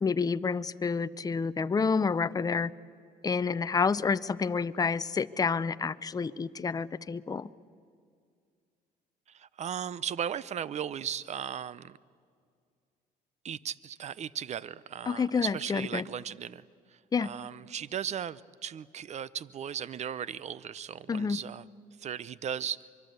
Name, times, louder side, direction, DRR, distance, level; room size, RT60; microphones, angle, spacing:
voice 1, 0.0-2.7 3.2-7.5 15.1-16.0 17.1-17.3 21.1-21.4, left 5 dB, 20° left, 14 dB, 0.6 m, -29 dB
voice 2, 9.4-12.0 13.4-16.6 17.2-21.6 22.0-22.8, right 8 dB, 40° right, 19 dB, 0.7 m, -36 dB
24.5 x 23.0 x 8.1 m, 2.2 s
cardioid pair, 110°, 17 cm